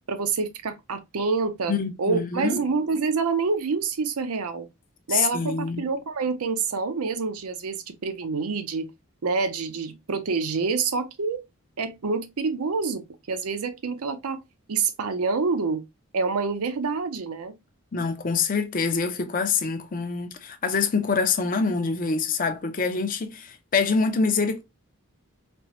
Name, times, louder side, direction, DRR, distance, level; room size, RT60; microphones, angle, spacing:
voice 1, 0.1-1.7 2.0-4.7 5.1-8.9 9.2-11.4 11.8-14.4 14.7-15.8 16.1-17.5, right 4 dB, 80° right, 0.6 m, -27 dB
voice 2, 1.7-2.6 5.1-5.8 17.9-24.6, left 5 dB, 40° left, 0.5 m, -25 dB
4.3 x 2.1 x 2.6 m
head